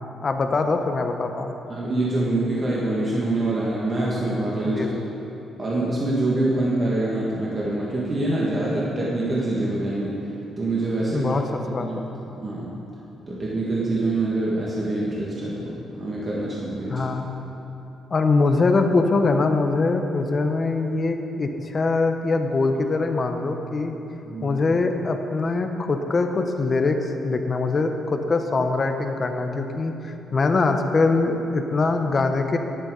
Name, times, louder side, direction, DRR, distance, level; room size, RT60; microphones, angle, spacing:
voice 1, 0.2-1.5 4.7-5.0 11.1-11.4 11.7-12.1 16.9-17.3 18.1-24.0 24.4-27.0 27.2-32.6, left 3 dB, 35° left, 5 dB, 0.9 m, -23 dB
voice 2, 1.7-4.9 5.6-10.2 10.6-11.3 11.8-11.9 12.3-12.7 13.3-17.1 24.2-24.5, right 2 dB, 30° right, -6 dB, 1.8 m, -25 dB
13.0 x 11.0 x 3.9 m, 3.0 s
cardioid pair, 125°, 0 cm